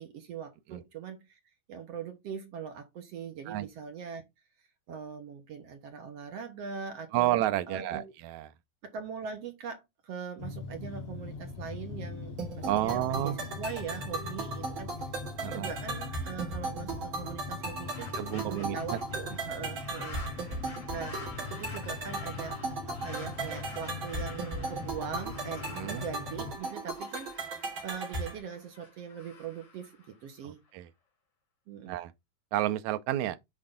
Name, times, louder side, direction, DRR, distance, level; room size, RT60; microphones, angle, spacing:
voice 1, 0.0-1.4 1.7-4.2 4.9-8.1 8.8-14.9 15.4-20.2 20.5-21.2 21.5-22.6 22.9-30.6 31.7-32.0, right 7 dB, 60° right, 1.9 m, -41 dB
voice 2, 7.1-8.5 12.6-13.4 15.4-15.7 18.1-19.0 25.7-26.1 30.4-30.9 31.9-32.1 32.5-33.4, right 14 dB, 75° right, 1.8 m, -30 dB
sound 1, 10.4-26.6, left 4 dB, 85° left, 1.3 m, -42 dB
sound 2, 12.4-28.4, right 3 dB, 35° right, 3.5 m, -37 dB
sound 3, 17.6-30.7, left 4 dB, 45° left, 4.1 m, -50 dB
8.9 x 4.6 x 3.8 m
omnidirectional pair, 3.9 m